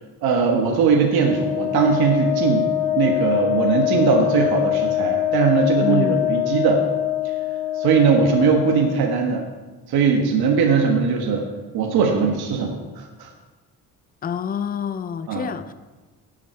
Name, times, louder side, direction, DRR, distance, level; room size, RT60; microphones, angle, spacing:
voice 1, 0.2-2.7 2.9-6.8 7.7-9.4 9.9-11.5 11.7-13.3 15.3-15.5, right 5 dB, 75° right, 1 dB, 1.5 m, -20 dB
Wind instrument woodwind instrument, 1.1-8.9, left 13 dB, ahead, 1.6 m, -24 dB
voice 2, 5.8-6.4 14.2-15.7, left 7 dB, 25° left, 12 dB, 0.4 m, -27 dB
12.5 x 7.8 x 4.5 m, 1.2 s
cardioid pair, 175°, 38 cm